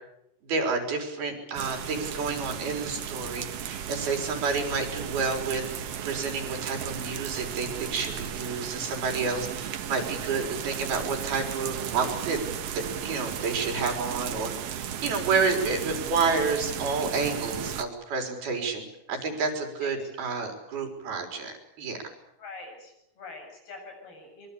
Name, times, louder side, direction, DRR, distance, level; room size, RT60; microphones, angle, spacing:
voice 1, 0.4-5.6 6.0-12.4 12.7-14.5 15.0-22.0, right 4 dB, 85° right, 4 dB, 6.0 m, -29 dB
sound 1, 1.5-17.8, right 9 dB, 60° right, 1.7 m, -35 dB
voice 2, 22.4-24.5, left 3 dB, 85° left, 3 dB, 9.6 m, -44 dB
24.0 x 23.0 x 8.6 m, 0.81 s
omnidirectional pair, 4.3 m